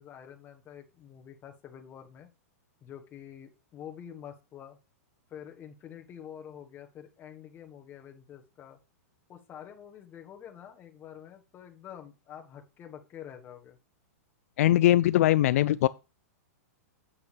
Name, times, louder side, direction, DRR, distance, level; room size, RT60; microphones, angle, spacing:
voice 1, 0.0-2.3 2.8-4.8 5.3-8.8 9.3-13.8, left 9 dB, 25° left, 1.4 m, -47 dB
voice 2, 14.6-15.9, left 13 dB, 65° left, 0.4 m, -21 dB
8.6 x 8.3 x 3.4 m
hypercardioid pair, 135°, 8 cm